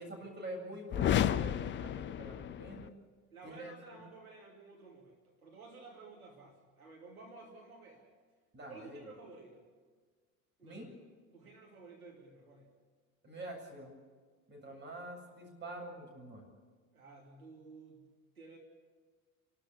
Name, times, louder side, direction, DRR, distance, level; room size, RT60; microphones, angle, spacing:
voice 1, 0.0-2.9 3.4-4.0 8.5-9.1 10.6-10.9 13.2-14.0 14.5-16.5, right 1 dB, 25° right, 2 dB, 7.6 m, -46 dB
sound 1, 0.9-2.9, left 10 dB, 25° left, 0.6 m, -32 dB
voice 2, 3.3-8.1 8.7-9.6 10.6-10.9 11.3-12.7 14.7-15.0 16.9-18.0 18.3-18.6, right 3 dB, 80° right, -1 dB, 2.9 m, -54 dB
29.0 x 13.0 x 8.5 m, 1.5 s
figure-of-eight pair, 70°, 42 cm